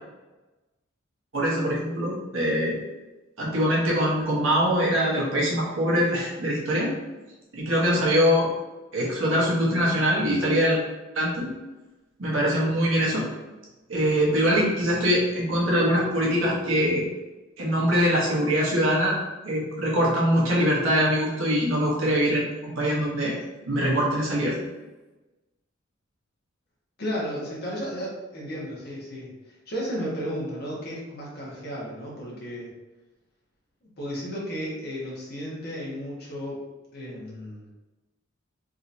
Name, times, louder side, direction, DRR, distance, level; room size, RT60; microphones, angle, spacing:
voice 1, 1.3-2.8 3.4-6.9 7.5-8.5 8.9-10.8 11.1-11.5 12.2-13.2 13.9-17.0 17.6-19.2 19.4-23.4 23.7-24.6, equal, 75° right, -5 dB, 1.1 m, -23 dB
voice 2, 27.0-29.3 29.7-32.7 34.0-36.6 36.9-37.7, equal, 50° left, -5 dB, 1.3 m, -33 dB
3.8 x 3.0 x 2.6 m, 1.1 s
head